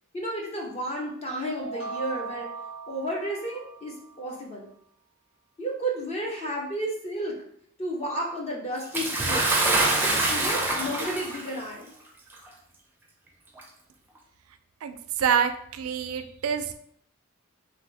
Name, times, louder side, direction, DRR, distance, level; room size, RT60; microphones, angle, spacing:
voice 1, 0.1-2.5 2.9-4.7 5.6-7.4 7.8-9.5 10.3-11.9, right 1 dB, 30° left, -2 dB, 0.6 m, -32 dB
sound 1, 1.6-4.3, right 4 dB, 70° left, 1.2 m, -39 dB
Bathtub (filling or washing) / Splash splatter, 8.9-11.5 12.5-12.6 13.6-13.7, right 2 dB, 10° right, 0.5 m, -25 dB
voice 2, 14.8-16.7, right 7 dB, 75° right, 8 dB, 0.4 m, -27 dB
3.0 x 2.7 x 3.3 m, 0.66 s
head